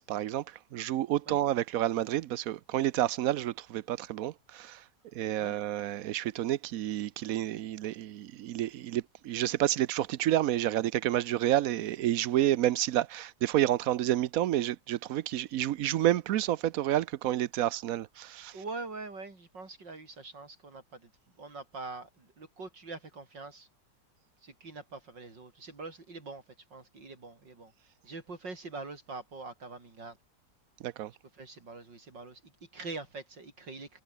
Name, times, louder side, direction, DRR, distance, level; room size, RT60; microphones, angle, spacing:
voice 1, 0.0-4.8 5.1-18.5 30.8-31.1, right 13 dB, 65° right, 0.9 m, -29 dB
voice 2, 18.5-21.1 21.4-23.7 24.4-30.2 31.3-34.0, right 3 dB, 85° right, 5.4 m, -44 dB
omnidirectional pair, 1.9 m